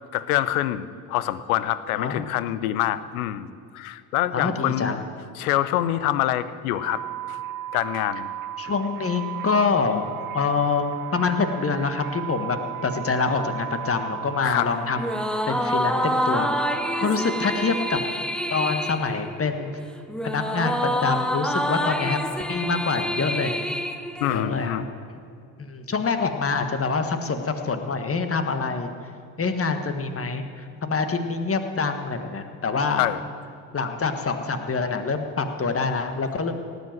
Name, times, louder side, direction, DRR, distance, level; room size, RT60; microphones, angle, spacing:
voice 1, 0.1-5.0 5.4-7.0 7.3-7.4 7.7-8.3 14.4-14.7 24.2-24.8 33.0-33.2, left 13 dB, 75° left, 16 dB, 0.7 m, -25 dB
voice 2, 1.9-2.4 4.3-5.0 8.6-10.0 10.3-16.6 17.0-18.0 18.5-19.8 20.2-22.2 22.5-23.5 24.3-24.8 25.6-28.9 29.4-33.1 33.7-36.5, left 4 dB, 30° left, 7 dB, 1.5 m, -26 dB
sound 1, 6.7-18.0, right 12 dB, 50° right, 0.9 m, -35 dB
sound 2, 15.0-24.7, equal, ahead, 0.9 m, -27 dB
17.5 x 8.1 x 7.5 m, 2.3 s
hypercardioid pair, 50°, 44 cm